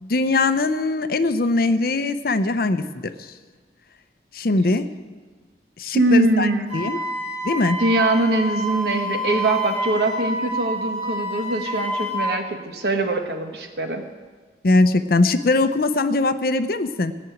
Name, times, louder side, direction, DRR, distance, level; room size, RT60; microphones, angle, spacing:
voice 1, 0.0-3.3 4.3-4.9 5.8-7.0 7.4-7.8 14.6-17.1, left 2 dB, 55° left, 11 dB, 0.6 m, -21 dB
voice 2, 5.9-6.6 6.9-7.1 7.8-14.0, right 2 dB, 60° right, 5 dB, 1.4 m, -22 dB
Wind instrument woodwind instrument, 6.7-12.3, right 1 dB, 35° right, 1.9 m, -28 dB
17.0 x 6.0 x 9.1 m, 1.4 s
head